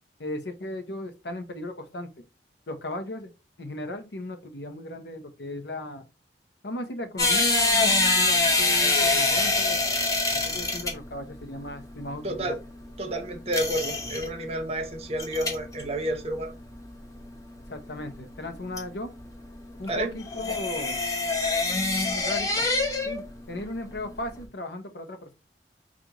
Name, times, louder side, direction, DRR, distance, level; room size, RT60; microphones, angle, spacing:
voice 1, 0.2-2.1 2.7-3.3 3.6-6.0 6.6-9.8 10.3-12.6 17.7-19.1 19.8-21.0 22.1-22.7 23.1-25.3, left 1 dB, 70° left, 0.8 m, -36 dB
sound 1, 7.2-23.3 23.5-24.4, left 3 dB, 20° left, 0.7 m, -25 dB
voice 2, 12.2-12.6 13.0-16.5 19.9-20.1, right 1 dB, 35° right, 0.8 m, -30 dB
5.1 x 2.5 x 2.9 m
head